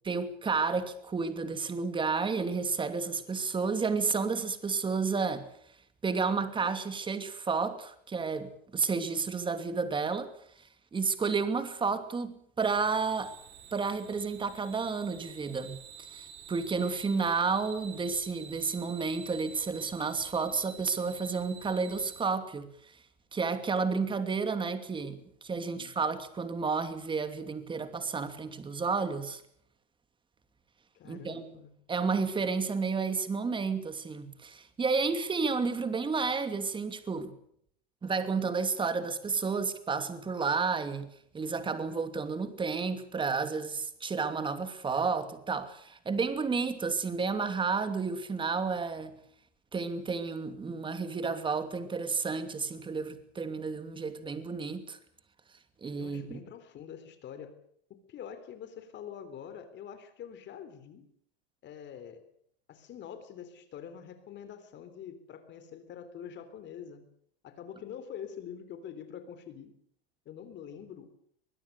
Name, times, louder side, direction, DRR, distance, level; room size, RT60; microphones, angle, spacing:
voice 1, 0.0-5.5 6.0-10.3 10.9-13.3 13.7-15.8 16.1-22.7 23.3-29.4 31.0-31.4 31.9-37.3 38.0-49.2 49.7-55.0 55.8-56.4, right 4 dB, 15° right, 2.7 m, -31 dB
sound 1, 12.6-22.2, right 6 dB, 80° right, 7.9 m, -49 dB
voice 2, 25.6-25.9 30.9-31.8 56.0-57.6 57.9-61.1 61.6-62.3 62.7-67.1 67.4-69.7 70.3-71.1, left 8 dB, 35° left, 3.7 m, -45 dB
24.5 x 20.5 x 6.8 m
supercardioid pair, 130°, 32 cm